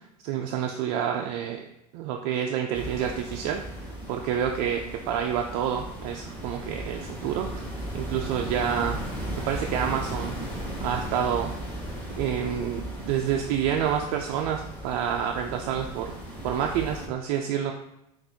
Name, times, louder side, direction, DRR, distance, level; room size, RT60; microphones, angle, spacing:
voice 1, 0.2-1.7 1.9-3.6 4.1-7.6 7.9-9.0 9.4-11.5 12.2-16.2 16.4-17.7, right 9 dB, 65° right, 2 dB, 0.4 m, -28 dB
sound 1, 2.7-17.1, equal, 10° left, 1.6 m, -36 dB
6.0 x 2.6 x 2.7 m, 0.85 s
hypercardioid pair, 100°, 20 cm